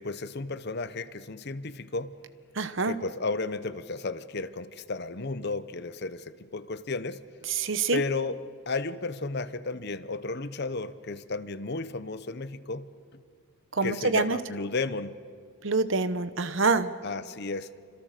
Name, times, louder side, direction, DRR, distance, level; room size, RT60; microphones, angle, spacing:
voice 1, 0.0-2.2 2.8-7.2 7.9-8.4 8.7-12.9 13.8-15.1 17.0-17.7, left 3 dB, 50° left, 13 dB, 0.9 m, -33 dB
voice 2, 2.6-2.9 7.6-8.0 13.8-14.4 15.6-16.9, right 4 dB, 55° right, 12 dB, 1.0 m, -26 dB
28.0 x 26.0 x 6.7 m, 2.3 s
head